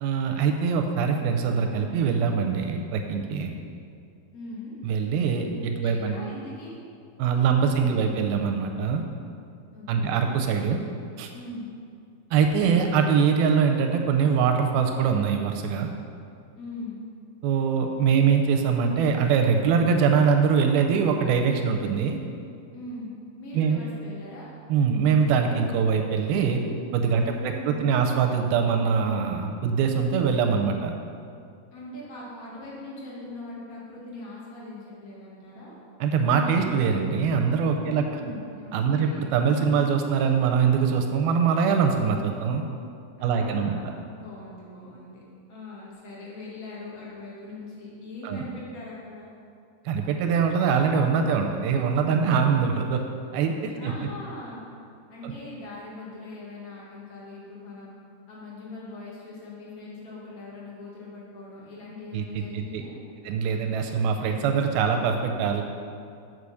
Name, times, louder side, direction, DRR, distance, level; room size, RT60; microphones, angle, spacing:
voice 1, 0.0-3.6 4.8-6.2 7.2-9.0 9.9-10.8 11.2-11.3 12.3-15.9 17.4-22.2 23.5-23.8 24.7-26.6 26.9-30.9 36.0-38.0 38.7-42.6 43.2-43.8 48.2-48.4 49.9-53.0 53.3-53.7 55.2-55.3 62.1-62.2 62.5-62.8 63.3-65.6, right 6 dB, 80° right, 4 dB, 2.3 m, -23 dB
voice 2, 4.3-4.7 5.8-6.8 7.7-7.8 8.1-8.2 9.7-10.3 11.3-11.7 16.6-17.0 22.7-24.5 27.1-28.1 31.7-35.8 37.7-39.3 43.2-45.2 45.5-49.3 53.8-54.7 55.1-57.9 58.3-62.9, left 2 dB, 45° left, -6 dB, 1.1 m, -41 dB
8.3 x 5.0 x 6.3 m, 2.4 s
omnidirectional pair, 4.6 m